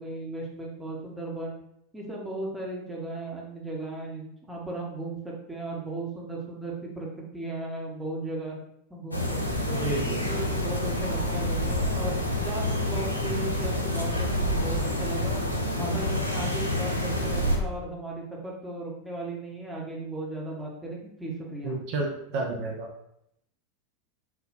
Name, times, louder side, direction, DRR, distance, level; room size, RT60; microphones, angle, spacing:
voice 1, 0.0-1.6 1.9-7.1 7.3-8.5 8.9-9.2 9.5-15.4 15.8-21.8, right 2 dB, 5° right, -3 dB, 0.8 m, -36 dB
sound 1, 9.1-17.6, left 1 dB, 85° left, 0.4 m, -28 dB
voice 2, 9.8-10.2 21.6-22.9, right 3 dB, 50° right, 0 dB, 0.4 m, -30 dB
3.3 x 2.1 x 2.5 m, 0.75 s
figure-of-eight pair, 85°, 0 cm